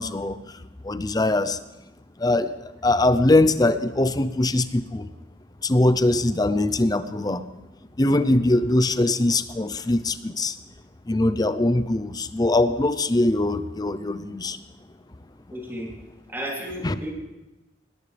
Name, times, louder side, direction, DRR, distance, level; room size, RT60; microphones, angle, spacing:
voice 1, 0.0-1.6 2.2-5.1 5.6-7.4 8.0-10.6 11.1-14.6 16.8-17.0, left 2 dB, 20° left, 12 dB, 0.6 m, -22 dB
voice 2, 15.5-15.9 16.3-17.1, equal, 10° right, -3 dB, 3.2 m, -33 dB
19.0 x 19.0 x 3.4 m, 1.0 s
head